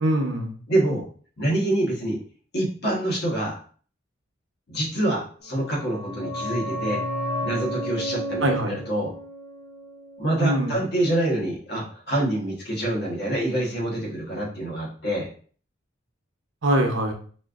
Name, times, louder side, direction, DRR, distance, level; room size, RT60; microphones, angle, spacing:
voice 1, 0.0-0.5 8.4-8.8 10.4-10.8 16.6-17.1, right 1 dB, 75° right, 3 dB, 0.7 m, -23 dB
voice 2, 0.7-1.0 1.4-2.2 2.5-3.6 4.7-7.0 7.4-9.1 10.2-15.3, right 1 dB, 55° left, -2 dB, 1.2 m, -26 dB
sound 1, 5.5-10.9 11.2-11.3, equal, 40° left, 0.8 m, -32 dB
4.3 x 2.5 x 2.4 m, 0.43 s
head